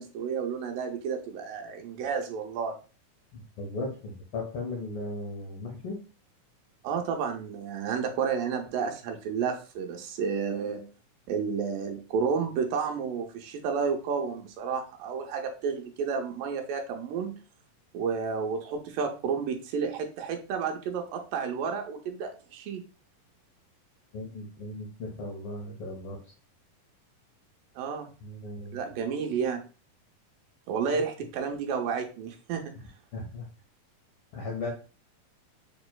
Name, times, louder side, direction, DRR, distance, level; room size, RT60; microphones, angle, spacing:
voice 1, 0.0-2.8 6.8-10.8 11.3-17.3 17.9-22.8 27.8-28.1 28.7-29.6 30.7-32.7, right 6 dB, 85° right, 3 dB, 2.4 m, -31 dB
voice 2, 3.3-6.0 24.1-26.2 28.2-28.8 33.1-33.4 34.3-34.7, left 2 dB, 75° left, -1 dB, 1.3 m, -37 dB
6.9 x 3.0 x 2.2 m, 0.34 s
omnidirectional pair, 4.0 m